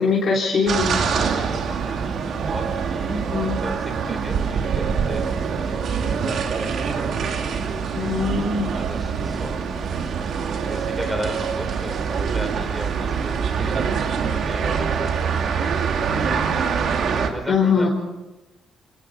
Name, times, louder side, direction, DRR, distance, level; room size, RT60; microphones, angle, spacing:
voice 1, 0.0-1.0 3.1-3.6 7.9-8.7 17.5-17.9, left 5 dB, 50° left, -4 dB, 3.8 m, -22 dB
sound 1, 0.7-17.3, right 6 dB, 60° right, 2.5 m, -24 dB
voice 2, 1.2-3.3 3.6-8.0 8.7-9.6 10.6-16.6 16.9-17.9, equal, ahead, 5 dB, 4.0 m, -36 dB
25.5 x 18.0 x 5.6 m, 1.1 s
cardioid pair, 125°, 0 cm